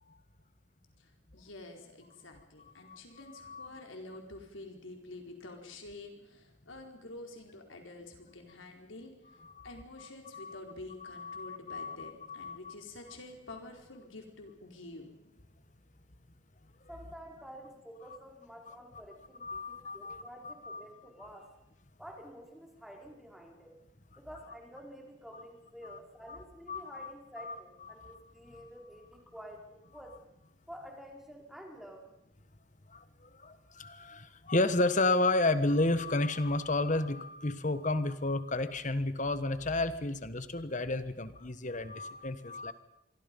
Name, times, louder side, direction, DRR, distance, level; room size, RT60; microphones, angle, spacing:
voice 1, 1.0-9.4 9.6-15.1, left 2 dB, 85° left, 3 dB, 4.6 m, -48 dB
voice 2, 3.3-3.7 9.4-9.7 10.0-10.1 10.3-10.6 11.0-12.7 18.7-18.8 19.4-20.9 25.3-25.4 25.9-26.0 26.3-26.4 26.7-27.5 28.0-28.1 32.9-42.7, left 2 dB, 40° left, 12 dB, 1.4 m, -32 dB
voice 3, 16.9-21.6 22.0-23.8 24.2-30.2 30.7-32.1, equal, ahead, 1 dB, 4.6 m, -50 dB
26.0 x 23.5 x 5.5 m, 0.86 s
head